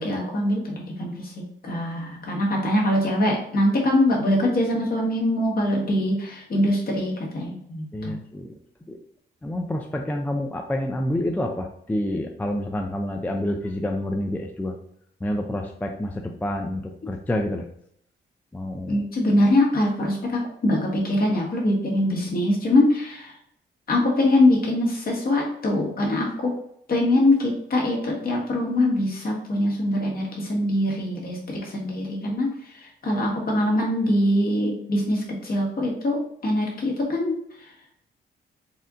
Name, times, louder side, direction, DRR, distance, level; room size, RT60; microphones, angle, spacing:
voice 1, 0.0-8.2 18.9-20.8 21.0-23.3 23.9-26.5 26.9-32.5 32.8-37.3, left 1 dB, 50° left, -1 dB, 1.4 m, -23 dB
voice 2, 7.9-8.5 8.9-9.0 9.4-14.8 15.2-17.7 18.5-19.0, left 1 dB, 10° left, 3 dB, 0.3 m, -28 dB
4.2 x 2.6 x 3.6 m, 0.68 s
cardioid pair, 115°, 20 cm